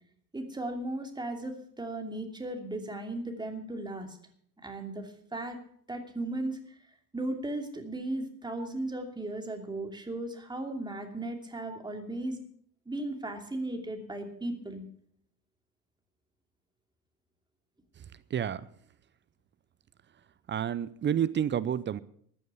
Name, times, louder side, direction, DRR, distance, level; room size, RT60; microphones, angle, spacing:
voice 1, 0.3-4.2 4.6-5.6 5.9-6.6 7.1-12.4 12.9-14.8, right 2 dB, 10° right, 4 dB, 2.8 m, -36 dB
voice 2, 18.3-18.6 20.5-22.0, right 9 dB, 25° right, 16 dB, 0.6 m, -29 dB
14.5 x 9.3 x 7.0 m, 0.63 s
hypercardioid pair, 75°, 46 cm